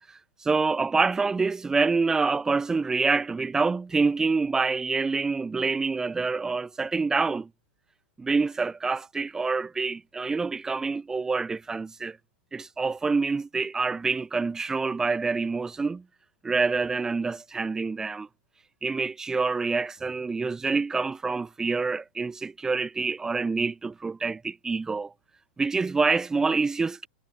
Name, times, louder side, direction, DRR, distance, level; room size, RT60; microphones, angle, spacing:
voice 1, 0.1-7.5 8.2-12.2 12.5-16.0 16.4-18.3 18.8-25.1 25.6-27.1, right 4 dB, 10° right, 6.2 m, -26 dB
supercardioid pair, 150°, 6 cm